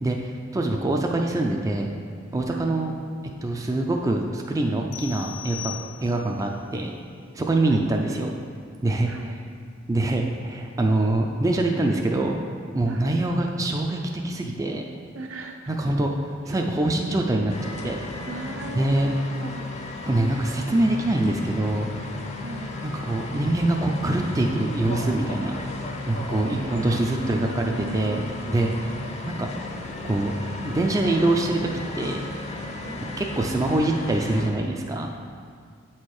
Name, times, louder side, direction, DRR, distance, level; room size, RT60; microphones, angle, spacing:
voice 1, 0.0-1.9 2.3-2.9 3.4-5.7 6.0-6.9 7.3-8.3 8.8-9.1 9.9-12.4 12.7-14.9 15.7-16.1 16.5-18.0 18.8-19.1 20.0-21.9 22.8-25.6 26.1-28.2 28.5-28.7 29.3-29.5 30.0-31.6 31.9-32.3 33.2-35.1, right 2 dB, 15° right, 1 dB, 0.3 m, -24 dB
sound 1, 4.9-6.4, left 12 dB, 85° left, 0.4 m, -38 dB
voice 2, 9.1-9.4 12.9-13.1 15.1-15.8 16.5-16.6 18.3-19.7 22.3-22.8 26.4-28.2 28.7-29.2 32.8-33.1, right 2 dB, 70° right, 3 dB, 0.6 m, -38 dB
sound 2, 17.5-34.5, left 2 dB, 35° left, 0.5 m, -35 dB
7.5 x 4.3 x 4.7 m, 2.1 s
head